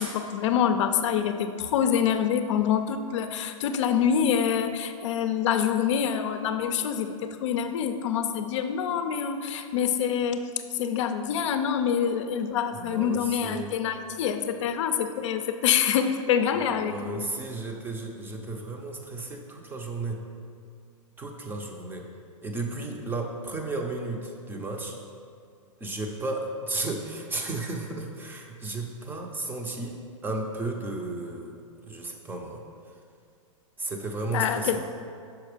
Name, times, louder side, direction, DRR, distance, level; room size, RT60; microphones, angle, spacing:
voice 1, 0.0-10.5 10.8-17.2 34.3-34.8, left 8 dB, 60° left, 9 dB, 0.5 m, -26 dB
voice 2, 12.7-13.7 16.6-20.2 21.2-22.1 22.4-25.0 25.8-31.6 31.8-32.6 33.8-34.8, right 2 dB, 10° right, 2 dB, 0.6 m, -34 dB
5.9 x 4.3 x 5.0 m, 2.3 s
hypercardioid pair, 135°, 17 cm